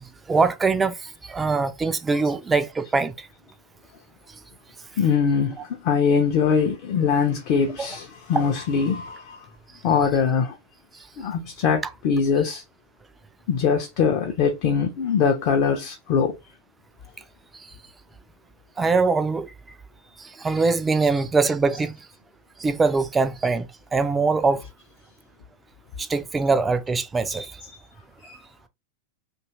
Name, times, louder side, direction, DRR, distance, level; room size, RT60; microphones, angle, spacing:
voice 1, 0.3-3.3 18.8-19.5 20.2-21.9 22.6-23.7 23.9-24.6 26.0-27.6, right 4 dB, 15° right, 0.3 m, -22 dB
voice 2, 5.0-9.4 9.8-10.6 11.2-12.6 13.5-16.3 27.6-27.7 28.2-28.4, left 6 dB, 45° left, 0.5 m, -22 dB
2.7 x 2.3 x 2.8 m
figure-of-eight pair, 90°, 0 cm